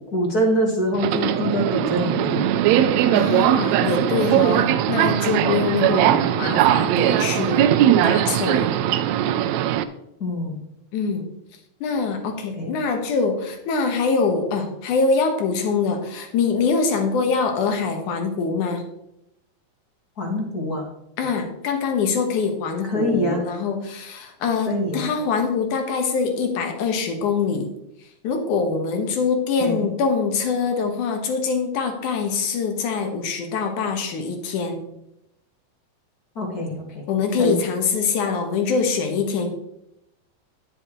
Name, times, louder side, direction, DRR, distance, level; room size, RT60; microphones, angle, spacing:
voice 1, 0.0-2.5 5.8-6.1 10.2-10.6 12.5-12.7 20.2-20.8 22.8-23.4 24.7-25.1 29.6-29.9 36.4-37.1 37.4-37.6, equal, 40° left, 0 dB, 1.6 m, -24 dB
Subway metro underground, 0.9-9.8, right 11 dB, 80° right, 1.7 m, -20 dB
voice 2, 3.1-7.7 8.0-8.7 10.9-11.3 11.8-18.9 21.2-27.7 28.2-34.8 37.1-39.5, left 5 dB, 80° left, 5 dB, 2.7 m, -24 dB
10.0 x 9.7 x 3.1 m, 0.82 s
omnidirectional pair, 3.5 m